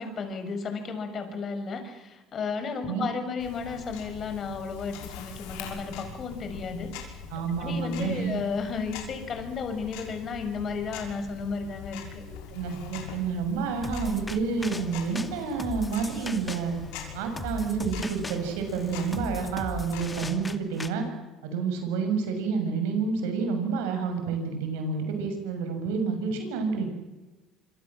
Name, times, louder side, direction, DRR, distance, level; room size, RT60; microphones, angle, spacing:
voice 1, 0.0-7.2 7.6-12.2, left 5 dB, 45° left, 7 dB, 6.8 m, -33 dB
Tick-tock, 3.4-20.3, left 6 dB, 80° left, 5.9 m, -43 dB
voice 2, 7.3-8.4 12.3-16.7 17.1-21.0 21.4-26.9, right 5 dB, 85° right, 6 dB, 6.9 m, -29 dB
sound 1, 13.8-20.9, left 3 dB, 20° left, 2.5 m, -38 dB
26.5 x 25.0 x 7.6 m, 1.2 s
supercardioid pair, 75°, 0 cm